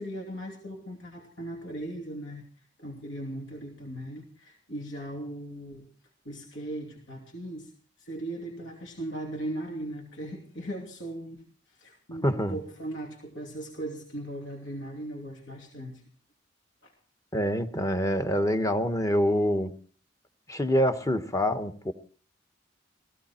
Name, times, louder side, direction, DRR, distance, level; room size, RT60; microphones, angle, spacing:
voice 1, 0.0-2.4 2.8-5.9 6.2-7.7 8.0-11.4 11.7-16.0 16.8-16.9, right 1 dB, 75° left, 0 dB, 2.9 m, -38 dB
voice 2, 12.2-12.6 17.3-19.7 20.5-21.9, equal, 15° left, 8 dB, 1.0 m, -26 dB
16.5 x 15.5 x 4.3 m, 0.43 s
head